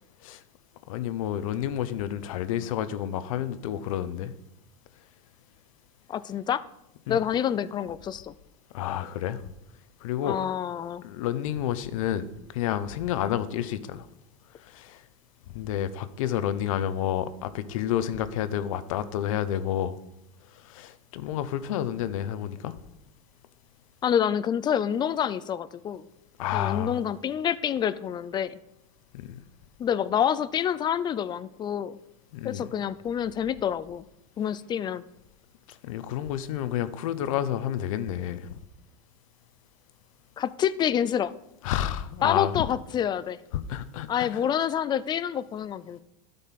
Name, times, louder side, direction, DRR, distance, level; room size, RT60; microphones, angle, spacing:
voice 1, 0.9-4.3 7.1-7.2 8.7-9.4 10.0-10.4 11.0-12.2 12.5-14.1 14.7-15.0 15.5-20.0 20.6-22.7 26.4-27.0 29.1-29.3 32.3-32.6 35.8-38.5 41.6-42.7 43.5-44.4, left 11 dB, 80° left, 0.8 m, -30 dB
voice 2, 6.1-6.6 7.1-8.3 10.2-11.0 24.0-26.0 26.5-28.6 29.8-32.0 32.4-34.0 34.4-35.0 40.4-41.3 42.2-43.4 44.1-46.0, left 9 dB, 25° left, 0.5 m, -27 dB
12.0 x 5.3 x 5.9 m
supercardioid pair, 130°, 17 cm